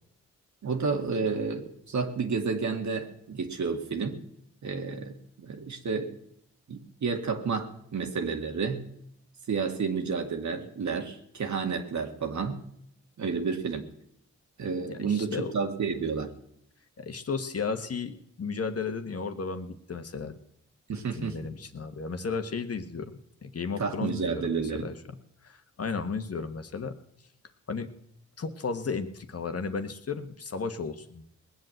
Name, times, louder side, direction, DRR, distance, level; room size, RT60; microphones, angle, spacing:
voice 1, 0.6-4.2 4.6-6.2 6.7-8.9 9.5-12.6 13.2-13.9 14.6-16.3 20.9-21.4 23.8-24.9, right 5 dB, 65° right, 4 dB, 2.1 m, -30 dB
voice 2, 14.9-15.5 17.0-18.1 18.4-20.4 21.1-23.1 23.4-25.1 25.4-26.9 27.7-27.9 28.4-31.2, left 5 dB, 50° left, 7 dB, 1.5 m, -34 dB
19.5 x 7.9 x 7.8 m, 0.73 s
cardioid pair, 55°, 31 cm